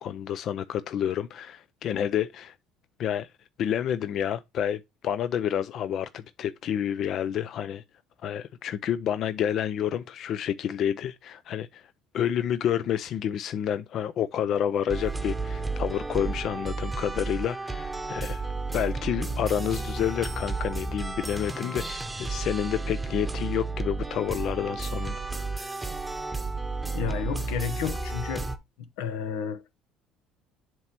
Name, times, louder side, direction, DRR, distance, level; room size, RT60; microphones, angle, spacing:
voice 1, 0.0-2.6 3.0-3.3 3.6-7.8 8.2-18.5 18.7-25.2, left 9 dB, 55° left, 0.4 m, -29 dB
sound 1, 14.9-28.6, right 3 dB, 10° right, 0.9 m, -32 dB
voice 2, 26.9-28.5 29.0-29.8, left 7 dB, 85° left, 0.9 m, -32 dB
7.5 x 3.0 x 5.8 m
supercardioid pair, 105°, 0 cm